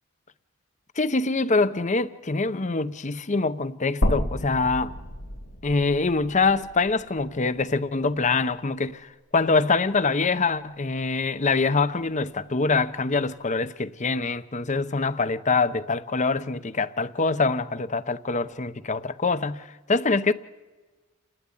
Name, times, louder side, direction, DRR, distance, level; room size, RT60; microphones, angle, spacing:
voice 1, 1.0-5.0 5.6-20.3, left 3 dB, 35° left, 0.8 m, -24 dB
sound 1, 4.0-8.2 8.5-8.6 10.0-10.1, equal, 60° left, 2.3 m, -31 dB
29.0 x 12.0 x 9.8 m
head